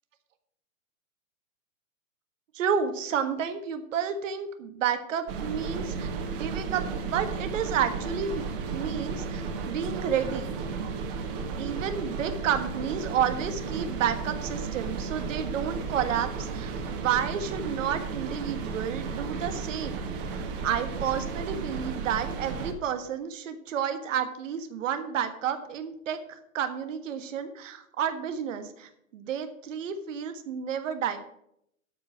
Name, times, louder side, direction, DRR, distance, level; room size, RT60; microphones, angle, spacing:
voice 1, 2.5-8.4 8.7-10.6 11.6-31.2, right 8 dB, 65° right, 9 dB, 1.6 m, -31 dB
sound 1, 5.3-22.7, right 5 dB, 40° right, 1.7 m, -34 dB
12.5 x 5.1 x 7.2 m, 0.74 s
hypercardioid pair, 145°, 41 cm